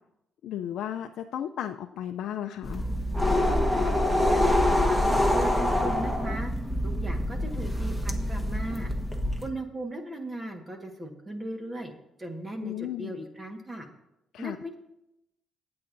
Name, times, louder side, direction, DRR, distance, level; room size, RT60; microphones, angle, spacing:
voice 1, 0.4-2.8 12.6-13.2 14.3-14.6, left 10 dB, 80° left, 5 dB, 0.4 m, -34 dB
sound 1, 2.6-9.5, left 1 dB, 5° right, 1.4 m, -25 dB
voice 2, 4.3-6.5 6.8-8.9 9.4-11.9 12.2-13.9 14.4-14.8, right 1 dB, 25° right, 4 dB, 1.5 m, -37 dB
21.5 x 8.6 x 2.7 m, 0.86 s
cardioid pair, 90°, 0 cm